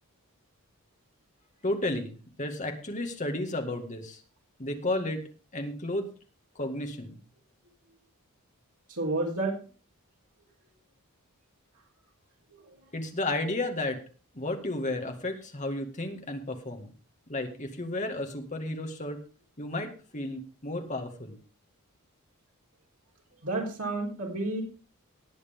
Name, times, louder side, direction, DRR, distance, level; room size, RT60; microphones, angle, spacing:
voice 1, 1.6-4.2 4.6-5.2 5.5-6.1 6.6-7.2 12.9-14.0 14.3-16.9 17.3-19.2 19.6-21.4, left 2 dB, 35° left, 5 dB, 2.0 m, -32 dB
voice 2, 8.9-9.6 12.5-12.6 23.4-24.6, right 2 dB, 80° right, -1 dB, 4.1 m, -30 dB
19.0 x 8.1 x 3.7 m, 0.36 s
head